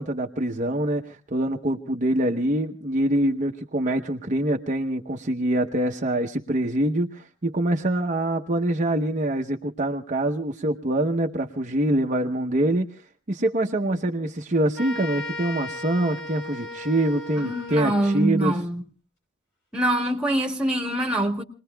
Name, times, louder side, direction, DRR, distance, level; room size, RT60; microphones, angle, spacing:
voice 1, 0.0-12.9 13.3-18.5, right 1 dB, 40° right, 0.9 m, -25 dB
sound 1, 14.8-18.4, left 2 dB, 60° left, 4.4 m, -36 dB
voice 2, 17.4-18.8 19.7-21.4, right 1 dB, 5° right, 1.9 m, -24 dB
28.0 x 20.5 x 2.2 m
head